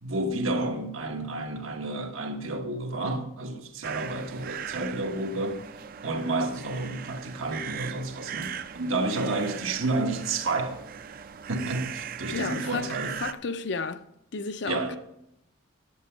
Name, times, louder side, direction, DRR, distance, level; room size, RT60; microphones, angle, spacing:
voice 1, 0.0-5.6 6.0-10.8 11.5-13.1 14.7-15.0, right 2 dB, 90° right, 1.2 m, -30 dB
sound 1, 3.8-13.3, right 8 dB, 45° right, 0.4 m, -39 dB
voice 2, 12.3-12.9 13.2-14.0 14.3-15.0, left 4 dB, 55° left, 0.5 m, -32 dB
10.5 x 7.7 x 4.4 m
head